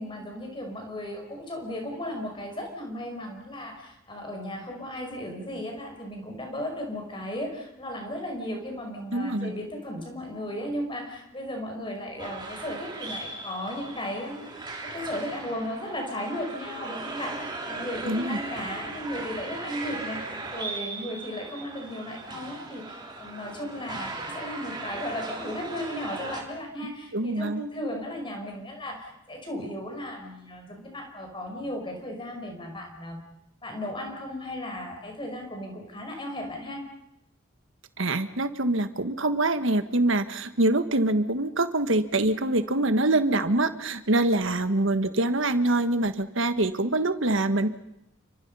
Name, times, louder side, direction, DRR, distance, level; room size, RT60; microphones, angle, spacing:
voice 1, 0.0-33.2 33.6-36.8, left 1 dB, 25° left, 2 dB, 5.4 m, -35 dB
voice 2, 9.1-9.5 18.0-18.4 26.8-27.6 38.0-47.7, right 2 dB, 65° right, 10 dB, 1.5 m, -25 dB
sound 1, 12.2-26.4, right 3 dB, 20° right, 3.2 m, -38 dB
30.0 x 25.5 x 5.6 m, 0.83 s
head